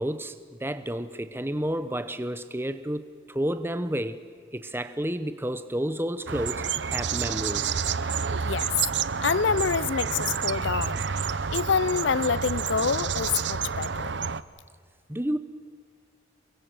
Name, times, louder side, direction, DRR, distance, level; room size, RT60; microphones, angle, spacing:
voice 1, 0.0-4.2 4.5-7.7 15.1-15.4, equal, 10° right, 1.0 m, -31 dB
sound 1, 6.3-14.4, right 6 dB, 70° right, 0.8 m, -29 dB
voice 2, 9.2-11.0 11.5-14.1, left 6 dB, 75° left, 0.6 m, -26 dB
29.0 x 23.0 x 6.3 m
head